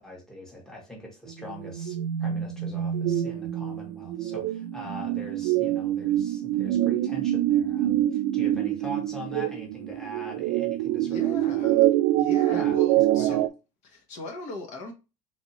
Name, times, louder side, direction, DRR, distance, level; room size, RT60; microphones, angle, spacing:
voice 1, 0.0-11.9 12.5-13.4, equal, 5° left, 1.2 m, -42 dB
sound 1, 1.3-13.5, right 13 dB, 85° right, 0.4 m, -25 dB
voice 2, 11.0-11.8 12.1-13.5 13.8-14.9, left 2 dB, 55° left, 1.2 m, -39 dB
3.4 x 2.6 x 4.1 m
cardioid pair, 160°, 14 cm